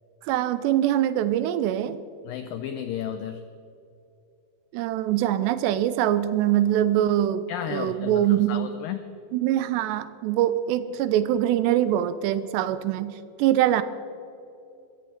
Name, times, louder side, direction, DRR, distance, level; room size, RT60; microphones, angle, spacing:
voice 1, 0.2-2.0 4.7-8.7 9.3-13.8, right 12 dB, 85° right, 13 dB, 2.9 m, -23 dB
voice 2, 2.3-3.4 7.5-9.1, left 9 dB, 90° left, 9 dB, 2.0 m, -33 dB
22.0 x 15.0 x 4.3 m, 2.6 s
omnidirectional pair, 4.9 m